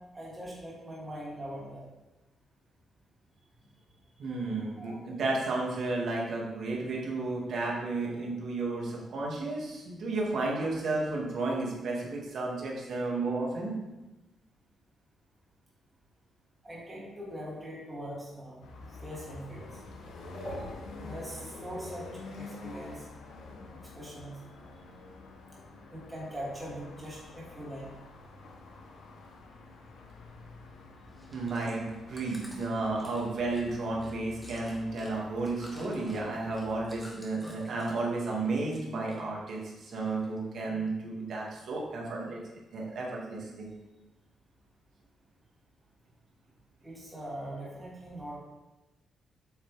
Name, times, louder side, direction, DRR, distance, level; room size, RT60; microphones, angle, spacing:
voice 1, 0.0-1.8 4.8-5.0 16.6-18.6 19.0-19.8 20.3-23.1 23.9-24.8 25.9-27.9 46.8-48.4, equal, 15° right, -6 dB, 2.8 m, -42 dB
voice 2, 4.2-13.8 31.3-42.4 42.7-43.7, right 3 dB, 65° right, -3 dB, 2.1 m, -32 dB
sound 1, 18.6-36.9, left 3 dB, 85° left, 1.1 m, -48 dB
Chewing mastication, 31.1-38.2 38.5-39.2 39.5-40.4 40.9-41.0, equal, 10° left, 1.6 m, -52 dB
8.4 x 5.8 x 3.5 m, 1.1 s
cardioid pair, 125°, 0 cm